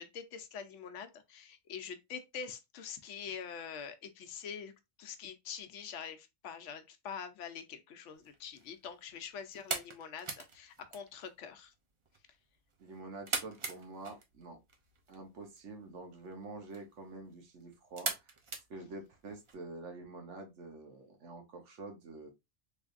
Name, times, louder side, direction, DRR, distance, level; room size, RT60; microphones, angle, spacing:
voice 1, 0.0-4.7 5.0-11.7, left 7 dB, 85° left, 1.0 m, -45 dB
sound 1, 8.1-19.5, right 4 dB, 35° right, 0.5 m, -44 dB
voice 2, 12.8-14.6 15.1-18.3 18.7-22.3, right 3 dB, 80° right, 1.3 m, -47 dB
3.4 x 3.2 x 2.4 m
omnidirectional pair, 1.2 m